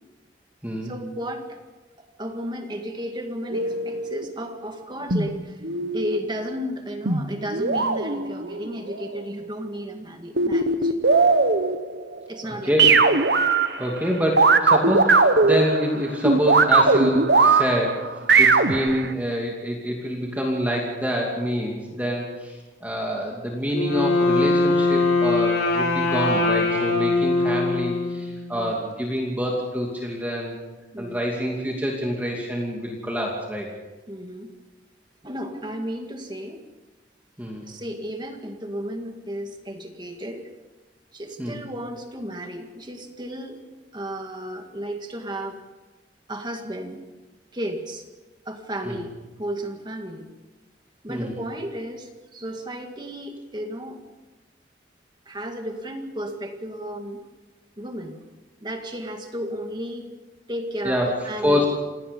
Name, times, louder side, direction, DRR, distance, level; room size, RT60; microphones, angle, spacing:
voice 1, 0.8-1.6 2.0-5.6 5.9-10.9 12.3-12.9 28.5-28.8 30.9-31.2 34.1-34.6 35.2-36.6 37.7-40.5 41.1-43.6 43.9-45.6 46.3-47.1 47.5-48.1 48.5-49.1 49.4-50.3 51.0-54.0 55.3-57.2 57.8-58.2 58.6-60.1 60.5-61.7, equal, 25° right, 4 dB, 2.0 m, -33 dB
sound 1, 3.5-4.3 5.1-6.2 7.1-9.1 10.4-12.2 12.8-14.1 14.4-19.1, right 4 dB, 65° right, 1.3 m, -20 dB
voice 2, 12.7-13.0 13.8-18.1 18.4-30.6 31.0-33.7 37.4-37.7 41.4-41.6 48.8-49.0 51.1-51.3 60.8-61.1 61.4-61.7, equal, 10° right, -2 dB, 2.6 m, -26 dB
Wind instrument woodwind instrument, 23.7-28.6, left 2 dB, 85° left, 5.4 m, -22 dB
28.5 x 17.5 x 5.4 m, 1.2 s
head